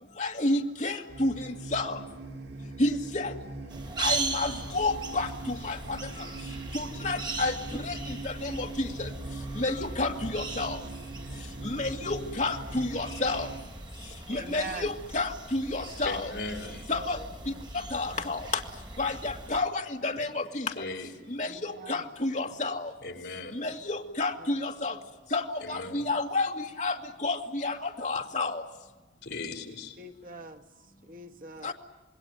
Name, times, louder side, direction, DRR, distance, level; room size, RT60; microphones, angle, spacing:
voice 1, 0.2-2.0 2.8-3.3 4.0-6.0 6.7-9.1 9.6-10.8 11.6-13.5 14.3-16.3 16.9-17.2 17.7-18.5 19.0-20.9 21.3-22.9 23.5-25.0 25.3-28.6 31.6-31.7, left 2 dB, 40° left, 4 dB, 2.0 m, -30 dB
sound 1, 1.1-13.6, right 2 dB, 75° right, 2.3 m, -41 dB
sound 2, 3.7-19.6, right 3 dB, 25° right, 3.4 m, -39 dB
voice 2, 14.3-14.9 16.9-17.2 17.4-17.6 21.5-22.0 24.4-24.5 30.0-30.6 31.0-31.7, right 3 dB, 45° right, 4 dB, 1.5 m, -42 dB
voice 3, 16.0-16.9 20.8-21.1 23.0-23.7 25.6-26.1 29.2-30.0, left 3 dB, 70° left, 6 dB, 3.8 m, -38 dB
27.0 x 21.0 x 9.7 m, 1.1 s
head